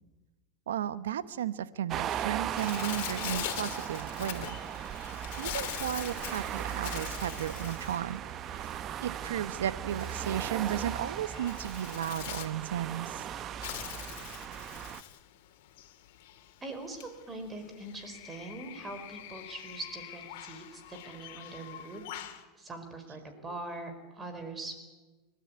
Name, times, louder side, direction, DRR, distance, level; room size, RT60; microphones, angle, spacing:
voice 1, 0.7-4.6 5.4-8.2 8.6-8.7 9.0-13.2 23.5-23.6, right 10 dB, 90° right, 15 dB, 1.0 m, -34 dB
sound 1, 1.9-15.0, right 10 dB, 40° right, 0.9 m, -38 dB
Bird, 2.6-22.4, left 13 dB, 70° left, 2.6 m, -43 dB
voice 2, 16.6-22.0 22.6-24.8, right 2 dB, 20° right, 7 dB, 4.6 m, -42 dB
29.5 x 13.0 x 9.6 m, 1.2 s
hypercardioid pair, 110°, 0 cm